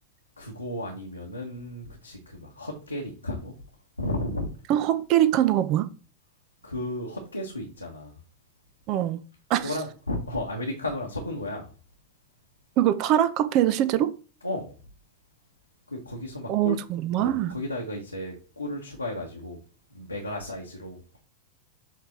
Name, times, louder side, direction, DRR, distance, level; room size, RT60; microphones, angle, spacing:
voice 1, 0.4-3.5 4.0-4.5 6.6-8.1 9.6-11.7 14.4-14.7 15.9-16.8 17.2-19.6 19.9-21.0, left 1 dB, 85° left, 1.3 m, -34 dB
voice 2, 4.7-5.9 8.9-9.2 9.5-9.7 12.8-14.1 16.5-17.5, right 12 dB, 40° right, 0.6 m, -23 dB
7.5 x 3.3 x 4.3 m
figure-of-eight pair, 90°, 0 cm